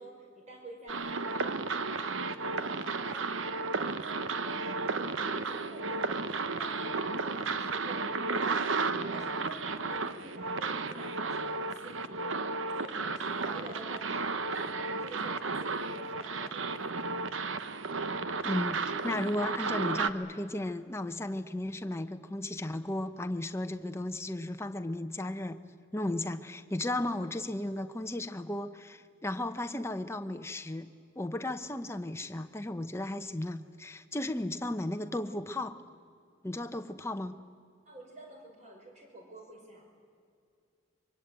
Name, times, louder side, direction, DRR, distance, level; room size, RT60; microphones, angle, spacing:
voice 1, 0.0-6.2 6.5-8.8 9.1-12.4 12.8-16.8 37.9-39.8, right 1 dB, 35° right, 1 dB, 5.4 m, -49 dB
sound 1, 0.9-20.1, right 4 dB, 80° right, 1.0 m, -33 dB
voice 2, 18.4-18.8 19.0-25.6 25.9-30.9 31.2-35.8 36.4-37.4, left 1 dB, 15° left, 8 dB, 0.9 m, -35 dB
24.0 x 24.0 x 9.1 m, 2.4 s
head